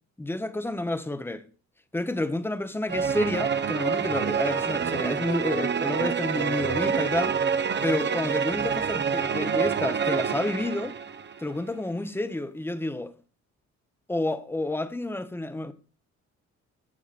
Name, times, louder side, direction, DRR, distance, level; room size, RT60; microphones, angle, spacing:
voice 1, 0.2-1.4 1.9-7.4 7.8-10.9 11.4-13.1 14.1-15.7, left 2 dB, 5° left, 0.9 m, -30 dB
sound 1, 2.9-11.4, right 6 dB, 35° right, 0.8 m, -27 dB
14.5 x 7.0 x 2.5 m
cardioid pair, 90°, 30 cm